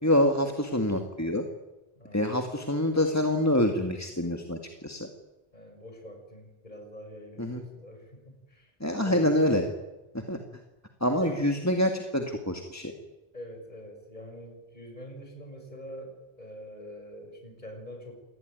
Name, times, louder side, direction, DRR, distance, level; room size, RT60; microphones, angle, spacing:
voice 1, 0.0-1.5 2.1-5.1 7.4-7.6 8.8-9.7 10.1-10.4 11.0-12.9, left 1 dB, 15° left, 4 dB, 2.0 m, -26 dB
voice 2, 2.0-2.3 5.5-8.7 9.0-9.3 11.2-11.5 13.3-18.1, equal, 45° left, 3 dB, 7.2 m, -45 dB
27.5 x 19.5 x 9.4 m, 1.1 s
omnidirectional pair, 1.0 m